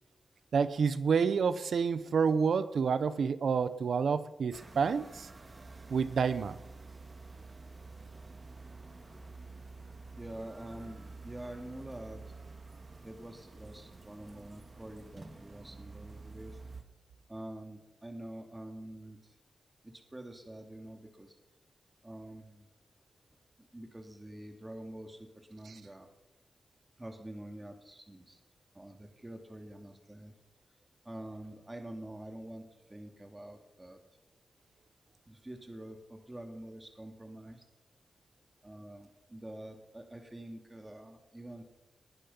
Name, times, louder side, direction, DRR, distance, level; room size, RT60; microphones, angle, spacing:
voice 1, 0.5-5.3 5.9-6.6, right 6 dB, 75° right, 15 dB, 0.9 m, -29 dB
sound 1, 4.5-16.8, right 3 dB, 35° right, 1.8 m, -49 dB
voice 2, 10.1-12.2 13.0-16.6 17.3-19.2 19.8-21.3 22.0-22.7 23.7-26.1 27.0-28.4 28.7-30.3 31.0-32.6 32.9-34.0 35.3-37.6 38.6-41.7, right 1 dB, 20° right, 4 dB, 2.5 m, -46 dB
20.5 x 10.5 x 5.6 m, 0.98 s
cardioid pair, 75°, 0 cm